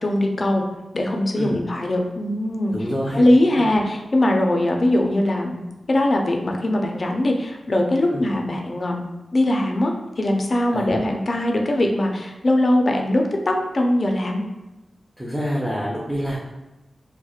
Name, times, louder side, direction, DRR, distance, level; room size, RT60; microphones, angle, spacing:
voice 1, 0.0-0.6 0.9-2.7 3.1-5.6 5.9-9.0 9.3-14.4, left 1 dB, 45° left, 2 dB, 0.4 m, -21 dB
voice 2, 2.7-3.2 3.5-3.7 8.1-8.3 10.7-11.0 15.2-16.4, equal, 10° right, -5 dB, 0.5 m, -27 dB
2.8 x 2.0 x 2.3 m, 1.0 s
wide cardioid pair, 75°, 0 cm